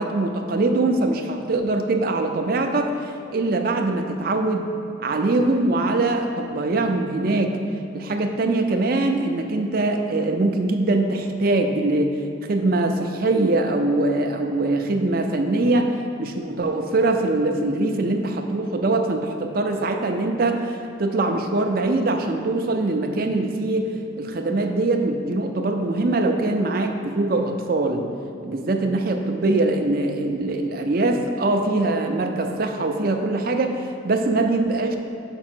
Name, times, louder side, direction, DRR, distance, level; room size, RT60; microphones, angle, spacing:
voice 1, 0.0-4.7 5.0-7.6 7.9-12.2 12.5-28.1 28.4-35.0, right 2 dB, 45° right, 4 dB, 0.4 m, -22 dB
6.0 x 4.8 x 4.4 m, 2.7 s
head